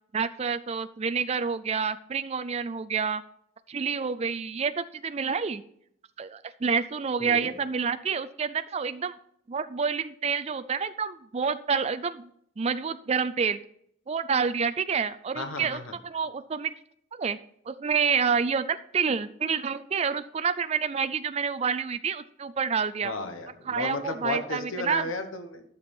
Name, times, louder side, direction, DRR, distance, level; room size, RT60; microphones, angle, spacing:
voice 1, 0.1-3.2 3.7-5.6 6.2-9.1 9.5-12.3 12.6-13.6 14.1-16.7 17.2-17.4 17.7-23.1 23.7-25.1, right 6 dB, 30° right, 11 dB, 0.4 m, -28 dB
voice 2, 7.2-7.5 15.3-15.9 23.0-25.6, left 2 dB, 90° left, 6 dB, 1.2 m, -34 dB
12.0 x 7.0 x 4.4 m, 0.68 s
head